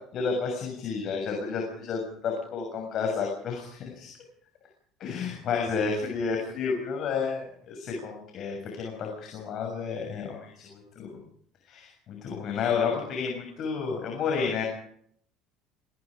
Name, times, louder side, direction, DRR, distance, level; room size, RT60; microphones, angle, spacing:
voice 1, 0.1-4.1 5.0-10.7 10.9-11.2 11.7-14.7, left 5 dB, 50° left, 1 dB, 6.8 m, -31 dB
26.0 x 19.5 x 5.1 m, 0.66 s
cardioid pair, 120°, 0 cm